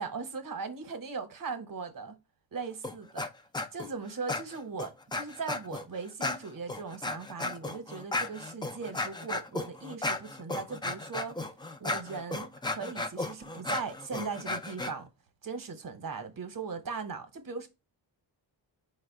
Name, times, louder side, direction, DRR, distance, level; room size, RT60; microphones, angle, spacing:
voice 1, 0.0-2.2 2.5-3.3 3.7-11.4 11.8-15.1 15.4-17.7, right 5 dB, 45° right, 1.0 m, -39 dB
sound 1, 2.8-3.3 3.5-3.9 4.3-5.8 6.2-14.9, left 2 dB, 10° left, 0.4 m, -34 dB
4.8 x 2.2 x 4.6 m
wide cardioid pair, 120°, 46 cm